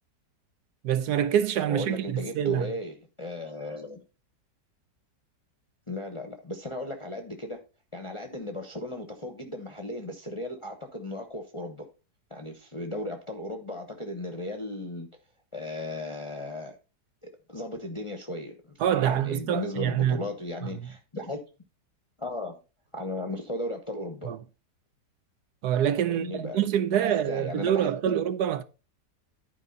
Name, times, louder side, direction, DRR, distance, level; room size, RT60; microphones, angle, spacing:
voice 1, 0.8-2.7 18.8-20.2 24.3-24.4 25.6-28.6, right 10 dB, 75° right, 1.1 m, -26 dB
voice 2, 1.7-4.0 5.9-7.6 7.9-11.9 12.3-15.1 15.5-16.8 17.2-21.4 22.2-22.6 22.9-24.3 26.1-26.6 26.9-28.2, left 1 dB, 25° left, 0.8 m, -36 dB
11.0 x 4.8 x 4.0 m
omnidirectional pair, 1.8 m